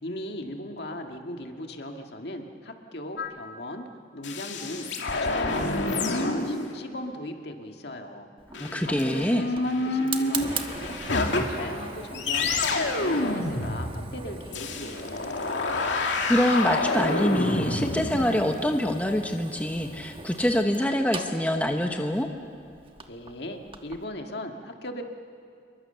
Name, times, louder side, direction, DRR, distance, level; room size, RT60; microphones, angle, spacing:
voice 1, 0.0-3.9 4.1-8.3 8.9-11.0 11.3-15.4 23.1-25.0, left 1 dB, 60° left, 4 dB, 2.0 m, -38 dB
sound 1, 3.2-3.3 4.2-6.7 8.5-11.8 12.1-18.8, left 2 dB, 75° left, 2.3 m, -28 dB
Fire, 8.4-24.0, right 4 dB, 30° right, 1.3 m, -41 dB
voice 2, 8.6-9.4 16.3-22.3, equal, 10° left, 4 dB, 1.0 m, -25 dB
28.0 x 22.5 x 6.9 m, 2.4 s
head